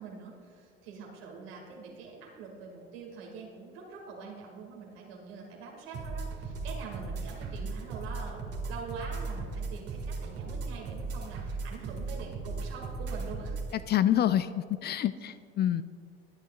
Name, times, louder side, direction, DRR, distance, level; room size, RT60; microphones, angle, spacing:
voice 1, 0.0-13.6 15.1-15.2, right 4 dB, 70° right, -1 dB, 2.1 m, -44 dB
sound 1, 5.9-13.7, right 3 dB, 50° right, 2.0 m, -37 dB
voice 2, 13.7-15.8, left 11 dB, 35° left, 14 dB, 0.4 m, -27 dB
21.0 x 9.2 x 2.4 m, 2.3 s
figure-of-eight pair, 60°, 31 cm